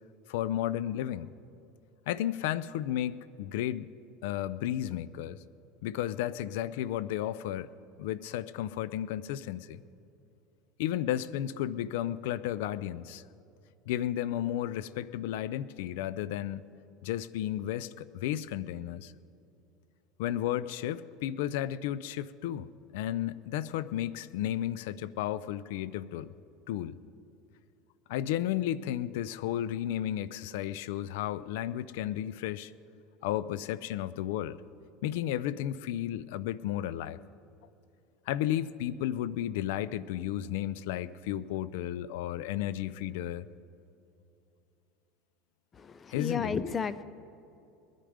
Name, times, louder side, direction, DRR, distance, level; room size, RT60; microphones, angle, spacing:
voice 1, 0.3-1.3 2.1-3.9 4.2-5.4 5.8-7.7 8.0-9.8 10.8-13.2 13.9-16.6 17.0-19.1 20.2-26.3 26.7-27.0 28.1-32.7 33.2-34.6 35.0-37.2 38.3-43.5 46.1-46.6, left 12 dB, 80° left, 18 dB, 0.4 m, -33 dB
voice 2, 45.8-47.0, left 6 dB, 25° left, 17 dB, 0.6 m, -33 dB
21.0 x 10.5 x 5.1 m, 2.8 s
supercardioid pair, 120°, 0 cm